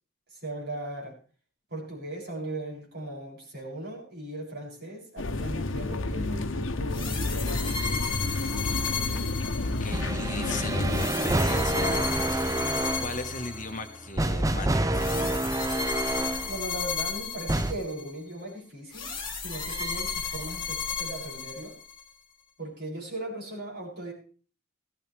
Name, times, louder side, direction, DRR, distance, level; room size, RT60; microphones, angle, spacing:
voice 1, 0.3-1.2 1.7-7.8 16.5-21.8 22.6-24.1, right 1 dB, 55° right, -3 dB, 7.2 m, -38 dB
sound 1, 5.2-11.1, left 2 dB, 80° left, 0.9 m, -30 dB
sound 2, 6.9-10.1 10.9-14.0 14.9-18.1 18.9-22.0, left 5 dB, 25° left, 2.8 m, -34 dB
voice 2, 9.6-12.6 13.0-15.4, left 3 dB, 40° left, 6 dB, 1.4 m, -37 dB
sound 3, 9.9-16.6 17.5-17.7, right 1 dB, 15° right, 0.6 m, -28 dB
17.0 x 15.5 x 3.5 m, 0.40 s
head